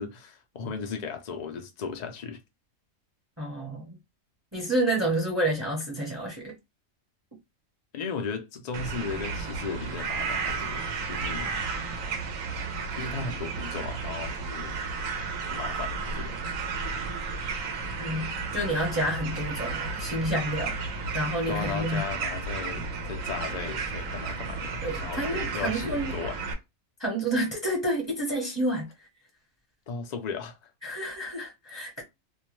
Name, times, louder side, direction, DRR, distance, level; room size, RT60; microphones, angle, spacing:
voice 1, 0.0-2.4 7.9-11.5 13.0-14.8 15.5-16.4 21.5-26.4 29.9-30.7, left 5 dB, 65° left, 0.4 m, -36 dB
voice 2, 3.4-4.0 4.5-6.5 18.0-20.8 21.1-22.0 24.8-26.1 27.0-28.9 30.8-32.0, right 1 dB, 15° right, 0.6 m, -29 dB
sound 1, 8.7-26.5, right 4 dB, 80° right, 1.1 m, -33 dB
2.6 x 2.1 x 3.0 m
omnidirectional pair, 1.4 m